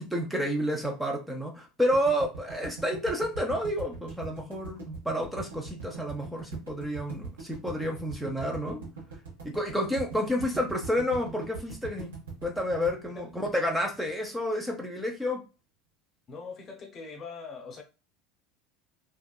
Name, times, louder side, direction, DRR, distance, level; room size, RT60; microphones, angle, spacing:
voice 1, 0.0-8.8 9.4-12.1 12.4-15.4, equal, ahead, 0.6 m, -30 dB
sound 1, 1.9-14.1, right 4 dB, 80° right, 1.0 m, -41 dB
voice 2, 16.3-17.8, left 5 dB, 35° left, 0.8 m, -42 dB
2.7 x 2.3 x 2.2 m
hypercardioid pair, 75°, 0 cm